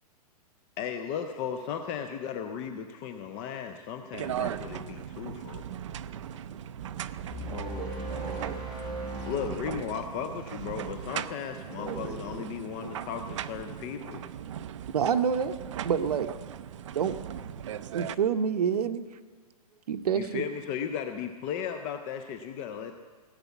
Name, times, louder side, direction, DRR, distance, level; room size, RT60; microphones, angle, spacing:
voice 1, 0.8-5.7 9.2-14.2 20.1-23.0, left 7 dB, 15° left, 6 dB, 0.4 m, -36 dB
sound 1, 4.1-18.1, right 10 dB, 50° right, 0.5 m, -38 dB
sound 2, 7.3-10.6, right 1 dB, 25° right, 4.9 m, -38 dB
voice 2, 7.4-8.6 11.7-12.5 19.7-19.8, right 2 dB, 5° right, -2 dB, 1.6 m, -40 dB
voice 3, 14.9-15.5 15.8-16.3 16.9-17.2 17.9-19.0 19.9-20.5, right 7 dB, 80° right, 10 dB, 0.9 m, -27 dB
17.5 x 8.1 x 8.1 m, 1.4 s
hypercardioid pair, 170°, 20 cm